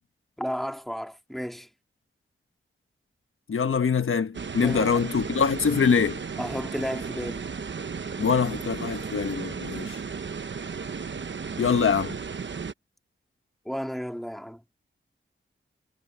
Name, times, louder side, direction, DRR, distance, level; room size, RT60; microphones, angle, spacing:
voice 1, 0.4-1.7 4.6-5.1 6.4-7.5 13.7-14.6, equal, ahead, 2.2 m, -33 dB
voice 2, 3.5-6.2 8.2-10.0 11.6-12.2, left 6 dB, 80° left, 1.1 m, -24 dB
sound 1, 4.3-12.7, right 5 dB, 60° right, 1.0 m, -35 dB
wide cardioid pair, 85°, 21 cm